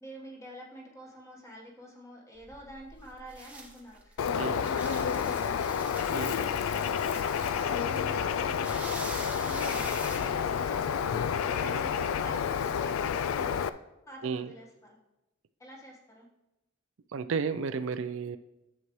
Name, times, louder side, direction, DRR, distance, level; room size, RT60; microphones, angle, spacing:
voice 1, 0.0-5.8 6.1-13.8 14.1-15.0 15.6-16.3, right 1 dB, 15° left, -2 dB, 1.3 m, -47 dB
sound 1, 2.4-11.2, right 2 dB, 5° right, 0.9 m, -46 dB
Bird, 4.2-13.7, left 7 dB, 90° left, 0.3 m, -30 dB
sound 2, 7.2-12.4, left 1 dB, 55° left, 3.6 m, -50 dB
voice 2, 17.1-18.4, right 5 dB, 70° right, 11 dB, 0.4 m, -32 dB
11.0 x 7.3 x 3.1 m, 0.95 s
head